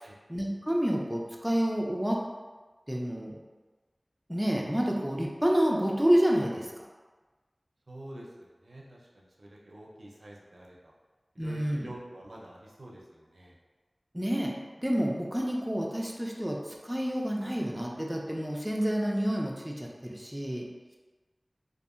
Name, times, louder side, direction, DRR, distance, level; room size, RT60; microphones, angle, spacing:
voice 1, 0.3-2.2 2.9-3.3 4.3-6.9 11.4-11.9 14.1-20.7, equal, 10° right, -2 dB, 0.4 m, -29 dB
voice 2, 7.9-10.9 11.4-13.6, right 1 dB, 85° right, -3 dB, 0.4 m, -47 dB
2.7 x 2.3 x 2.4 m, 1.3 s
wide cardioid pair, 45°, 0 cm